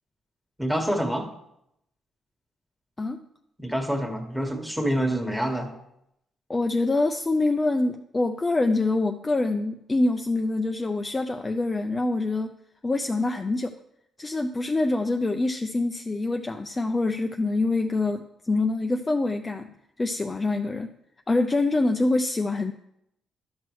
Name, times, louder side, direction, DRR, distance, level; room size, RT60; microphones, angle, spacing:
voice 1, 0.6-1.3 3.6-5.7, equal, 5° right, 4 dB, 1.3 m, -27 dB
voice 2, 6.5-12.6 12.8-13.7 14.2-19.7 20.0-20.9 21.3-22.7, left 2 dB, 25° left, 5 dB, 0.4 m, -25 dB
11.0 x 6.1 x 3.1 m, 0.78 s
cardioid pair, 90°, 0 cm